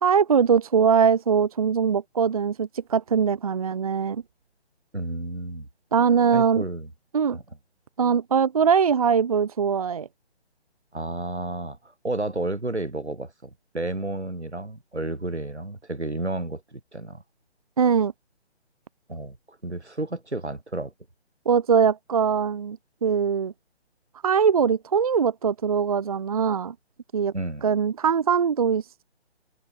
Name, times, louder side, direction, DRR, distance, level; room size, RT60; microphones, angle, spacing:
voice 1, 0.0-4.2 5.9-6.6 7.1-7.4 8.0-10.1 17.8-18.1 21.5-23.5 24.2-26.7 27.1-27.3 27.6-29.0, right 6 dB, 35° right, 0.8 m, -22 dB
voice 2, 4.9-5.7 6.3-6.9 7.3-7.4 10.9-17.2 19.1-20.9 27.3-27.6, right 2 dB, 80° right, 3.2 m, -31 dB
open air
figure-of-eight pair, 145°, 33 cm